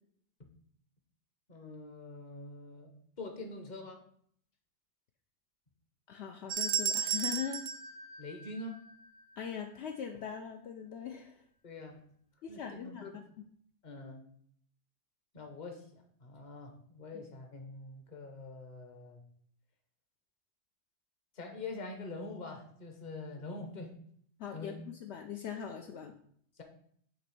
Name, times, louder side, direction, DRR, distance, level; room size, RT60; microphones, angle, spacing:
voice 1, 1.5-4.0 8.2-8.8 11.6-12.0 12.5-13.1 13.8-14.2 15.3-19.2 21.3-23.9 24.5-24.7 26.5-26.6, left 2 dB, 40° left, 4 dB, 1.1 m, -45 dB
voice 2, 6.1-7.6 9.4-11.4 12.4-13.0 13.4-13.5 24.4-26.2, left 8 dB, 70° left, 4 dB, 0.9 m, -41 dB
sound 1, 6.5-8.9, right 7 dB, 80° right, 0.9 m, -34 dB
7.1 x 3.1 x 6.0 m, 0.63 s
omnidirectional pair, 1.2 m